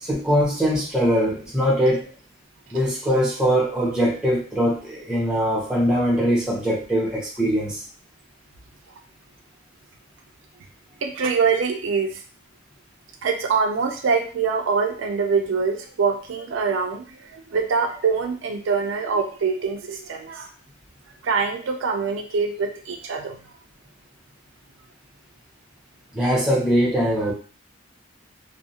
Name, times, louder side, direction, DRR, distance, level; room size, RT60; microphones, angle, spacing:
voice 1, 0.0-2.1 2.7-7.8 26.1-27.3, equal, 5° right, -5 dB, 0.7 m, -22 dB
voice 2, 11.0-12.2 13.2-20.5 21.2-23.4 27.2-27.3, right 5 dB, 80° right, 3 dB, 0.4 m, -24 dB
2.4 x 2.0 x 2.7 m, 0.39 s
head